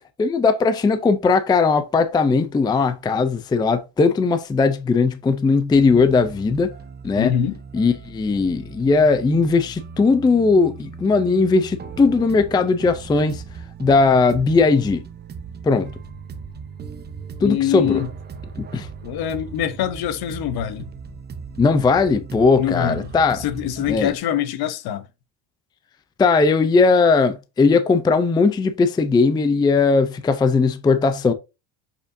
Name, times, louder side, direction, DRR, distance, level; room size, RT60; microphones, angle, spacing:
voice 1, 0.2-6.7 7.0-7.3 7.7-13.4 13.8-15.0 15.6-15.9 17.4-18.0 18.6-18.9 21.6-23.4 23.9-24.1 26.2-31.3, left 4 dB, 10° left, 0.4 m, -18 dB
sound 1, 5.7-24.2, right 5 dB, 25° right, 0.8 m, -38 dB
voice 2, 7.2-7.6 17.4-18.1 19.0-20.9 22.6-25.1, left 10 dB, 55° left, 0.9 m, -24 dB
6.8 x 5.5 x 2.6 m
cardioid pair, 150°, 43 cm